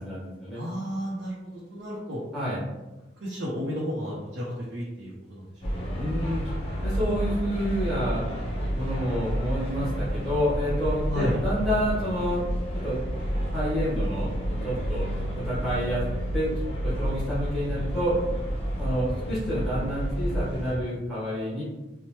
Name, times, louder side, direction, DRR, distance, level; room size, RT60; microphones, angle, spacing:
voice 1, 0.0-0.6 2.3-2.6 5.9-6.5 6.8-8.3 8.7-12.5 12.8-13.0 13.5-16.0 16.3-16.5 16.8-18.1 18.8-21.6, equal, ahead, -11 dB, 1.3 m, -29 dB
voice 2, 0.5-2.2 3.2-5.4 11.1-11.4, equal, 85° right, -6 dB, 0.6 m, -32 dB
sound 1, 5.6-20.8, equal, 30° left, 0.6 m, -30 dB
2.9 x 2.1 x 3.1 m, 1.1 s
head